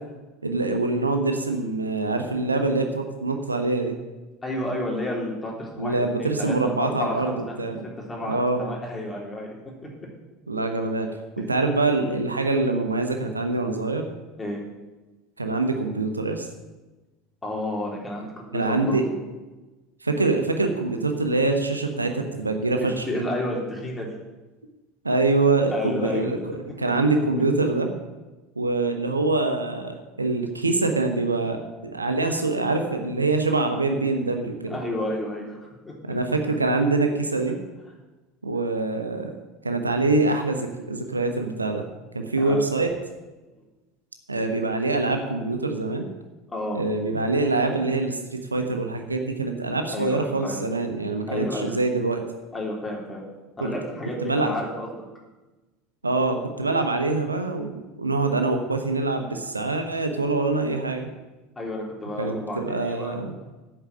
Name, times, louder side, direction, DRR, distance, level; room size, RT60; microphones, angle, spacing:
voice 1, 0.4-4.0 5.8-7.8 8.3-8.6 10.5-11.1 11.4-14.1 15.4-16.5 18.5-19.1 20.0-23.2 25.0-27.9 28.6-34.8 36.0-37.6 38.4-39.3 39.6-41.9 42.1-42.9 44.3-46.1 46.7-52.2 53.6-53.7 54.2-54.5 56.0-61.1 62.2-63.3, right 3 dB, 85° right, 5 dB, 1.0 m, -24 dB
voice 2, 4.4-7.5 8.1-9.5 14.4-14.6 17.4-19.1 22.8-24.1 25.7-26.3 34.7-35.6 35.8-36.2 42.4-42.6 46.5-46.8 49.9-50.6 51.3-51.7 52.5-53.2 53.6-54.9 61.6-63.2, left 1 dB, 15° left, -2 dB, 3.8 m, -31 dB
8.3 x 7.3 x 8.8 m, 1.1 s
figure-of-eight pair, 70°, 0 cm